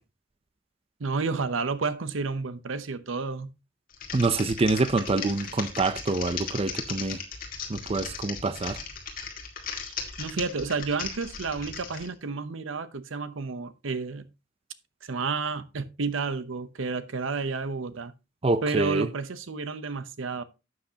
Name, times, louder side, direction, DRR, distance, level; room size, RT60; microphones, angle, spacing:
voice 1, 1.0-3.5 10.2-14.3 15.0-18.1 18.6-20.4, right 4 dB, 80° right, 0.8 m, -31 dB
Typing, 3.9-12.1, left 6 dB, 45° left, 2.0 m, -37 dB
voice 2, 4.1-7.2 7.7-8.8 18.4-19.1, right 3 dB, 30° right, 0.5 m, -26 dB
11.5 x 7.7 x 2.8 m
head